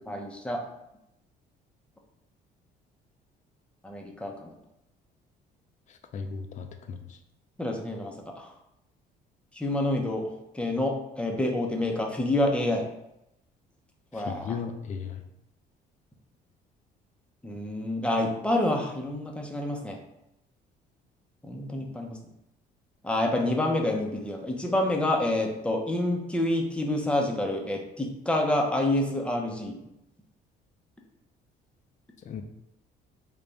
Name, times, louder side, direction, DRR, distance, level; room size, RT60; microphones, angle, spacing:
voice 1, 0.1-0.6 3.8-4.5 7.6-8.5 9.5-10.2 10.5-12.8 14.1-14.6 17.4-20.0 21.4-22.2 23.0-29.8, left 1 dB, 5° left, 1 dB, 0.6 m, -28 dB
voice 2, 6.1-7.0 14.3-15.1 32.3-32.4, left 6 dB, 45° left, 6 dB, 0.5 m, -35 dB
3.4 x 2.3 x 3.9 m, 0.85 s
cardioid pair, 110°, 17 cm